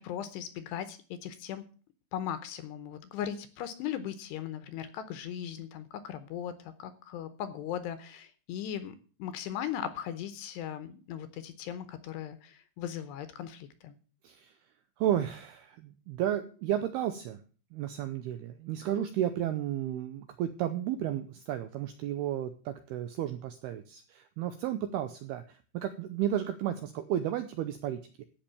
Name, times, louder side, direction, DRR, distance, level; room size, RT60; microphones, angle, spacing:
voice 1, 0.0-1.6 2.1-14.0, left 10 dB, 75° left, 12 dB, 2.7 m, -38 dB
voice 2, 15.0-17.4 17.7-28.2, right 11 dB, 85° right, 9 dB, 2.3 m, -33 dB
14.5 x 5.9 x 7.0 m, 0.39 s
omnidirectional pair, 5.5 m